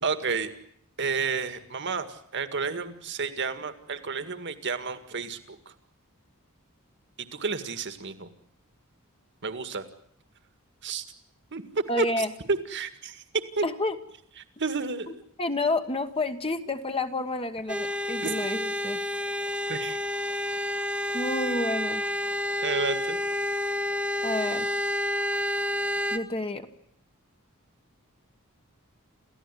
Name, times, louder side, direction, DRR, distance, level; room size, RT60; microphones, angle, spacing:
voice 1, 0.0-0.5 1.0-5.7 7.3-8.3 9.4-9.8 10.8-11.0 11.5-11.6 12.0-13.2 13.6-13.7 14.6-15.2 18.2-18.3 19.7-20.0 22.6-23.2, right 4 dB, 55° right, 10 dB, 2.0 m, -31 dB
voice 2, 11.9-12.3 13.6-14.0 15.4-19.0 21.1-22.0 24.2-24.7 26.1-26.7, left 2 dB, 25° left, 7 dB, 1.3 m, -29 dB
sound 1, 17.7-26.2, left 1 dB, 5° right, 1.6 m, -29 dB
28.5 x 15.5 x 9.9 m, 0.72 s
head